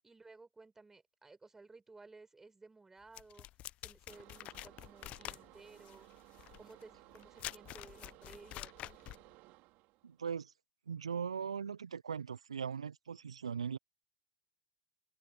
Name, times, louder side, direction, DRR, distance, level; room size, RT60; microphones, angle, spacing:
voice 1, 0.0-3.5 3.8-6.1 6.6-9.2, right 3 dB, 15° right, 4.6 m, -57 dB
sound 1, 3.1-9.3, left 15 dB, 45° left, 0.9 m, -47 dB
sound 2, 4.1-10.2, right 22 dB, 50° right, 5.2 m, -59 dB
voice 2, 10.0-10.5 10.9-13.8, right 7 dB, 80° right, 0.6 m, -39 dB
figure-of-eight pair, 80°, 3 cm